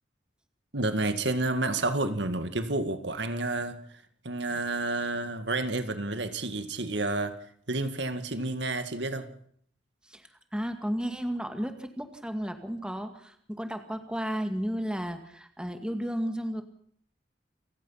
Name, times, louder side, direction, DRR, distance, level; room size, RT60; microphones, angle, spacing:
voice 1, 0.7-3.8 4.2-7.4 7.7-9.3, right 2 dB, 70° right, 9 dB, 2.0 m, -30 dB
voice 2, 10.1-16.6, equal, 5° right, 6 dB, 2.1 m, -33 dB
29.0 x 15.5 x 5.7 m, 0.62 s
head